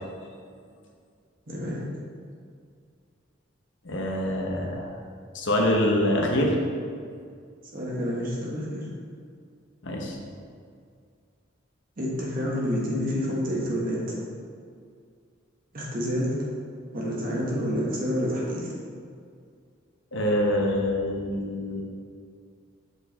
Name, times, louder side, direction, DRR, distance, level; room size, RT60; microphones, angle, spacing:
voice 1, 1.5-1.8 7.7-8.9 12.0-14.1 15.7-16.4 16.9-18.7, equal, 45° right, -5 dB, 1.4 m, -28 dB
voice 2, 3.8-4.9 5.3-6.5 9.8-10.2 20.1-21.8, left 1 dB, 65° left, -1 dB, 1.1 m, -25 dB
6.9 x 4.8 x 4.2 m, 2.2 s
head